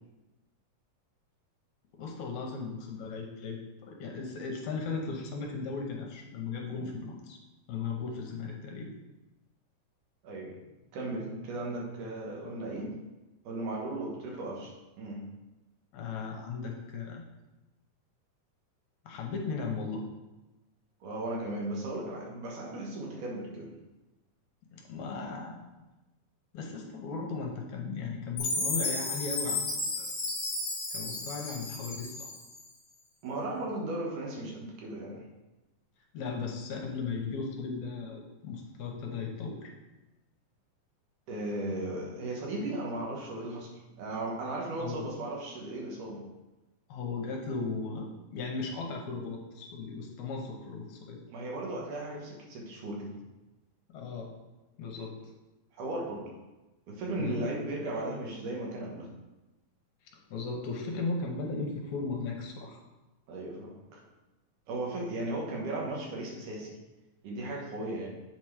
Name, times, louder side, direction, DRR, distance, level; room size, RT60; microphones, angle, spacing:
voice 1, 2.0-7.4 7.7-8.9 15.9-17.2 19.1-20.0 24.7-25.6 26.5-30.1 30.9-32.3 36.1-39.7 44.8-45.1 46.9-48.1 48.3-51.2 53.9-54.3 54.8-55.2 57.1-57.4 60.3-62.8, left 4 dB, 70° left, 1 dB, 2.0 m, -36 dB
voice 2, 10.2-10.6 10.9-12.9 13.4-14.7 15.0-15.2 21.0-23.7 33.2-35.3 41.3-43.7 44.0-46.3 51.3-53.2 55.7-56.4 56.9-59.1 63.3-64.0 64.7-66.7 67.2-68.1, right 2 dB, 75° right, -2 dB, 2.8 m, -36 dB
Chime, 28.4-32.6, left 2 dB, 40° left, 1.8 m, -33 dB
7.8 x 4.3 x 4.8 m, 1.1 s
omnidirectional pair, 3.7 m